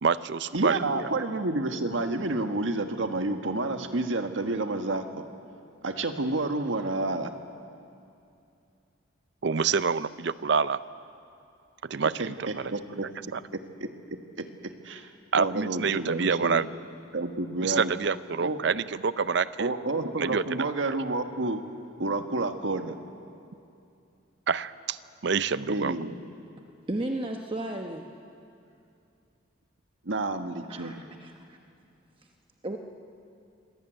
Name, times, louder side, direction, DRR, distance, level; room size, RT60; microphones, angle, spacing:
voice 1, 0.0-1.1 9.4-10.8 11.8-12.7 13.3-13.4 15.3-16.7 17.6-19.7 20.2-20.7 24.5-25.0 25.2-26.0, right 5 dB, 60° right, 15 dB, 0.6 m, -27 dB
voice 2, 0.5-5.0 5.8-7.3 12.2-13.1 13.5-16.6 17.1-17.9 18.4-18.6 19.6-21.6 22.0-23.0 25.7-26.2 30.0-31.0, right 2 dB, 75° right, 6 dB, 1.5 m, -30 dB
voice 3, 26.9-28.1 30.7-31.3 32.6-32.8, right 1 dB, 25° right, 3 dB, 1.0 m, -33 dB
26.0 x 18.0 x 9.1 m, 2.6 s
head